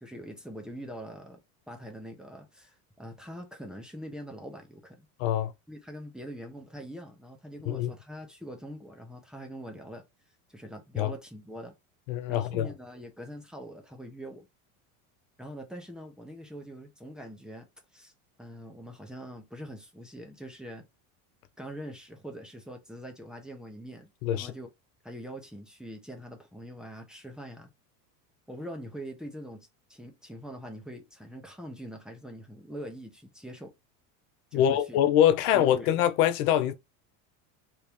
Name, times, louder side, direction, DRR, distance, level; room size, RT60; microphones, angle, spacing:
voice 1, 0.0-1.4 1.7-5.0 5.7-10.0 10.5-11.7 12.3-14.5 15.4-18.1 18.4-20.9 21.6-24.7 25.0-27.7 28.5-33.7 34.5-35.0 35.5-35.9, equal, ahead, 0.8 m, -43 dB
voice 2, 5.2-5.5 7.7-7.9 11.0-11.1 12.1-12.7 24.2-24.5 34.5-36.7, left 11 dB, 70° left, 0.6 m, -24 dB
3.0 x 2.9 x 3.4 m
supercardioid pair, 115°, 45 cm